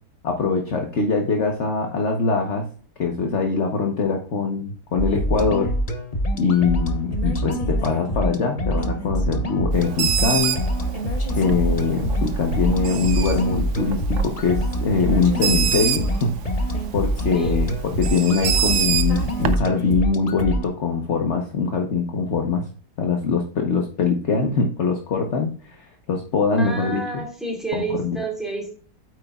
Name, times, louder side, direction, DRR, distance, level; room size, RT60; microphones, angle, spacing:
voice 1, 0.2-2.7 3.0-5.7 6.3-10.6 11.4-16.4 16.9-22.7 23.0-27.2 27.7-28.2, left 4 dB, 50° left, 3 dB, 1.3 m, -23 dB
sound 1, 5.0-20.6, equal, 30° left, 0.8 m, -25 dB
Bird, 9.7-19.6, right 8 dB, 60° right, 0.9 m, -27 dB
voice 2, 17.3-17.7 26.6-28.7, right 3 dB, ahead, -2 dB, 4.0 m, -30 dB
9.0 x 8.0 x 2.4 m, 0.43 s
omnidirectional pair, 1.8 m